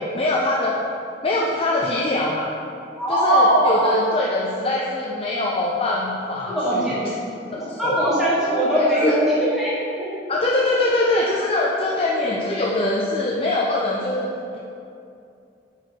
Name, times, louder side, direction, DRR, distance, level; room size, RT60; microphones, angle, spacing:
voice 1, 0.1-0.8 1.2-2.5 3.1-6.9 7.5-8.0 8.7-9.2 10.3-14.6, left 2 dB, 30° left, -3 dB, 0.7 m, -23 dB
voice 2, 3.0-3.8 6.5-7.0 7.8-10.1, equal, 5° right, -10 dB, 1.8 m, -20 dB
8.9 x 4.8 x 4.7 m, 2.5 s
head